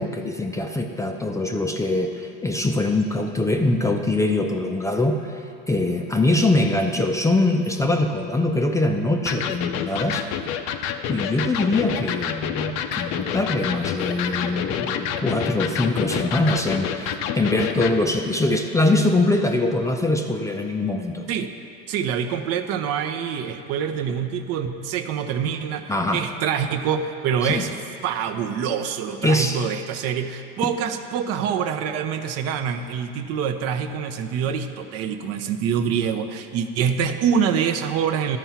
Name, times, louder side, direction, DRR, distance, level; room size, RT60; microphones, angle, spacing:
voice 1, 0.0-10.3 11.1-21.3 25.9-26.2 27.4-27.6 29.2-29.6, left 2 dB, 10° left, 3 dB, 0.5 m, -23 dB
Electric guitar, 9.3-18.0, left 8 dB, 60° left, 0.6 m, -28 dB
voice 2, 21.9-27.7 28.0-38.4, right 7 dB, 50° right, 7 dB, 0.7 m, -25 dB
12.5 x 4.5 x 5.7 m, 2.6 s
supercardioid pair, 100°, 31 cm